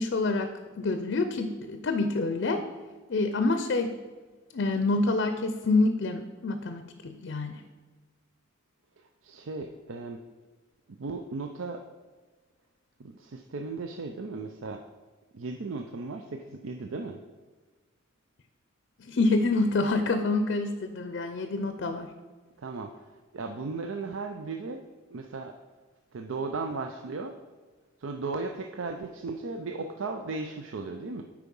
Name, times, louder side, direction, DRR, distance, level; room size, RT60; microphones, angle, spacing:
voice 1, 0.0-2.6 3.1-3.9 4.5-7.6 19.0-22.1, left 3 dB, 55° left, 8 dB, 0.5 m, -27 dB
voice 2, 9.0-10.2 11.0-11.8 13.0-14.8 15.3-17.2 22.6-22.9 23.3-24.8 25.1-25.5 26.1-27.3 28.0-31.2, right 3 dB, 70° right, 4 dB, 0.5 m, -36 dB
8.3 x 4.8 x 5.3 m, 1.4 s
head